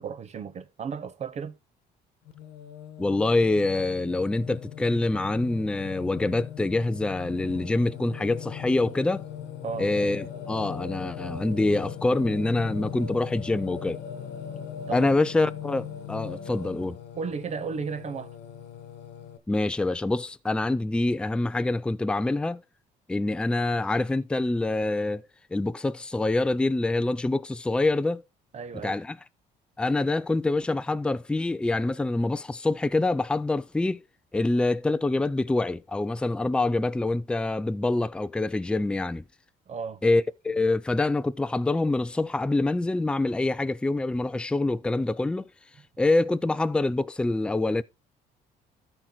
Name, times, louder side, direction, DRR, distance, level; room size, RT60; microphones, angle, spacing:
voice 1, 0.0-1.6 9.6-9.9 14.9-15.1 17.1-18.4 28.5-29.0 39.7-40.0, right 5 dB, 40° right, 0.9 m, -34 dB
Singing, 2.2-19.4, left 8 dB, 85° left, 1.3 m, -39 dB
voice 2, 3.0-9.3 9.8-14.0 14.9-17.0 19.5-22.6 23.1-25.2 25.5-28.2 28.8-29.2 29.8-34.0 34.3-39.2 40.0-45.4 46.0-47.8, left 2 dB, 5° left, 0.4 m, -25 dB
13.0 x 4.6 x 3.9 m
cardioid pair, 110°, 17 cm